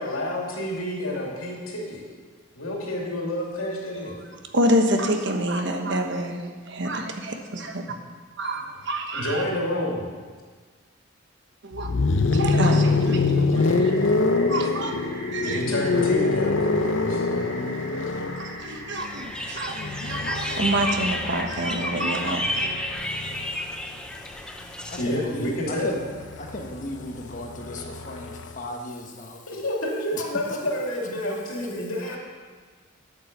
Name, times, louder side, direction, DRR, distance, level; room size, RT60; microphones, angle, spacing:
voice 1, 0.0-2.0 2.6-4.2 9.1-10.1 15.4-17.5 25.0-25.9 29.5-32.2, left 1 dB, 85° left, -2 dB, 2.9 m, -29 dB
voice 2, 4.5-7.8 8.4-9.4 11.6-11.9 12.3-13.9 14.5-15.0 15.3-15.6 18.3-22.8, right 1 dB, 60° right, 4 dB, 1.3 m, -27 dB
sound 1, 11.7-23.7 25.0-28.6, left 3 dB, 60° left, 0.6 m, -25 dB
sound 2, 13.5-22.9, right 1 dB, 30° right, 3.8 m, -41 dB
sound 3, 19.0-25.0, left 1 dB, 5° left, 0.6 m, -31 dB
voice 3, 22.9-26.0 26.4-29.5 30.1-30.6, left 1 dB, 40° left, 3 dB, 1.2 m, -37 dB
8.9 x 8.6 x 6.8 m, 1.5 s
head